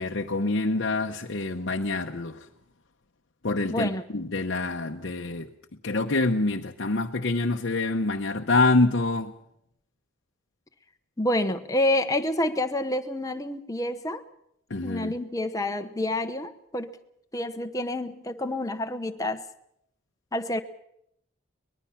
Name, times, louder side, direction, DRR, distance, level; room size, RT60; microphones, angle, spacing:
voice 1, 0.0-2.4 3.4-5.5 5.8-9.3 14.7-15.1, left 2 dB, 60° left, 0.9 m, -26 dB
voice 2, 3.7-4.0 11.2-14.2 14.8-17.0 17.3-19.4 20.3-20.6, left 1 dB, 15° left, 1.0 m, -28 dB
24.0 x 20.0 x 5.8 m
head